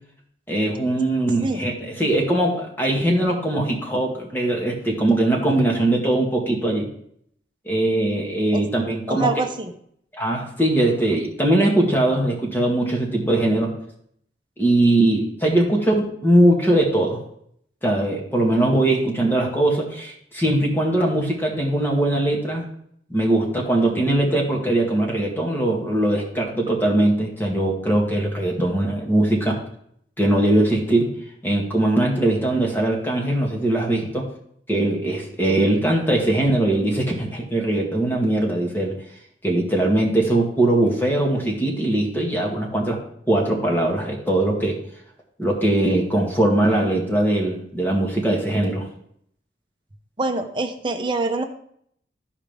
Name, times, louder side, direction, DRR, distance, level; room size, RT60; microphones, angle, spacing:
voice 1, 0.5-6.9 7.7-9.3 10.1-13.7 14.6-17.2 17.8-22.6 23.1-29.6 30.2-31.1 31.4-34.3 34.7-39.0 39.4-43.0 43.3-44.8 45.4-48.9, right 1 dB, 10° left, 0 dB, 1.8 m, -21 dB
voice 2, 9.1-9.7 50.2-51.4, right 3 dB, 30° right, 5 dB, 0.8 m, -25 dB
14.0 x 4.9 x 3.5 m, 0.67 s
head